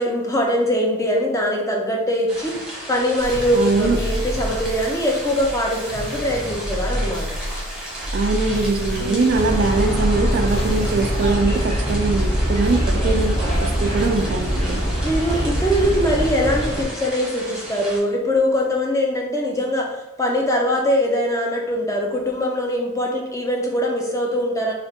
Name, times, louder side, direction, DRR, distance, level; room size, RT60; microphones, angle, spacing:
voice 1, 0.0-7.4 9.0-9.3 13.0-13.2 13.4-13.6 15.0-24.7, equal, 15° left, -1 dB, 0.6 m, -22 dB
sound 1, 2.3-18.0, right 1 dB, 5° right, 1.1 m, -35 dB
sound 2, 3.2-11.3, equal, 70° left, 1.5 m, -28 dB
voice 2, 3.5-4.0 8.1-14.8, right 3 dB, 45° right, 6 dB, 0.3 m, -22 dB
sound 3, 9.3-16.8, equal, 30° left, 1.3 m, -23 dB
3.3 x 2.4 x 4.3 m, 1.0 s
head